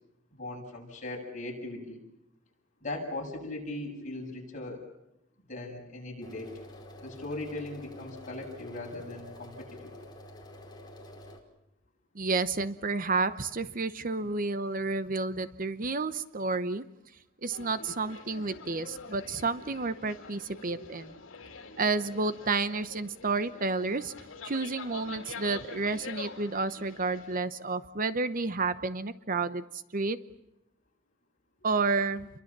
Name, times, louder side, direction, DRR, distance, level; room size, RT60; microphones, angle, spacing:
voice 1, 0.4-2.0 2.8-4.8 5.5-6.6 7.0-9.9, left 2 dB, 40° left, 0 dB, 7.9 m, -39 dB
sound 1, 6.2-11.4, left 1 dB, 20° left, 4.5 m, -48 dB
voice 2, 12.1-16.8 17.4-21.1 21.8-24.1 24.4-30.2 31.6-32.3, right 3 dB, 40° right, 12 dB, 0.9 m, -30 dB
sound 2, 17.5-27.4, left 4 dB, 70° left, 3.2 m, -46 dB
29.5 x 23.5 x 7.5 m, 0.84 s
head